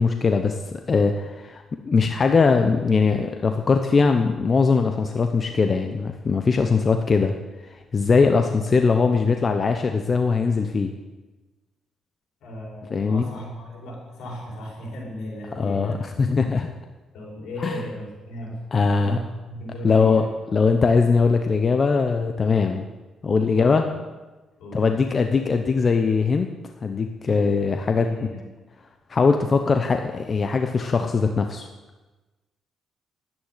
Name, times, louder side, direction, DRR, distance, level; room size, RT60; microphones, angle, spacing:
voice 1, 0.0-7.3 7.6-10.9 12.9-13.3 15.5-16.7 17.6-17.8 18.7-19.2 19.8-20.3 20.5-22.9 23.2-23.9 24.7-26.5 26.8-28.1 29.1-31.7, left 4 dB, 40° left, 6 dB, 0.9 m, -21 dB
voice 2, 12.4-16.0 17.1-20.4 23.5-24.0 24.6-24.9 27.9-28.4, equal, 75° left, -2 dB, 5.3 m, -36 dB
11.5 x 9.5 x 8.4 m, 1.2 s
cardioid pair, 90°, 0 cm